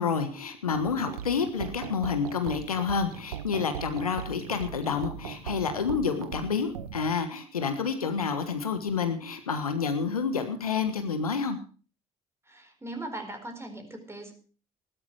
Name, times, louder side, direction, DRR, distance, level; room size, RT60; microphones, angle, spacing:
voice 1, 0.0-11.6, left 5 dB, 90° left, 9 dB, 1.3 m, -29 dB
sound 1, 0.7-7.2, left 4 dB, 50° left, 3.4 m, -51 dB
sound 2, 0.8-7.1, right 10 dB, 85° right, 0.7 m, -40 dB
voice 2, 12.5-14.3, right 2 dB, 15° right, 5 dB, 4.5 m, -39 dB
15.5 x 12.5 x 4.7 m, 0.38 s
figure-of-eight pair, 55°, 18 cm